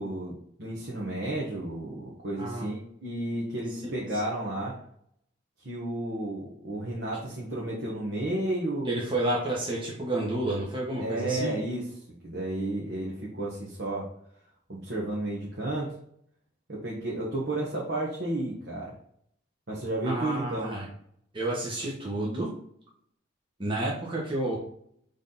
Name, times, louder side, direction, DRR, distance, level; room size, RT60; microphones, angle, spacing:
voice 1, 0.0-4.8 5.6-9.0 11.0-11.8 12.2-14.1 14.7-15.9 16.7-19.0 19.7-20.7, right 1 dB, 60° right, -5 dB, 1.4 m, -32 dB
voice 2, 2.4-2.7 3.8-3.9 8.9-11.5 20.0-20.9 21.3-22.5 23.6-24.6, right 1 dB, 25° right, -4 dB, 1.2 m, -30 dB
6.5 x 3.5 x 4.1 m, 0.68 s
head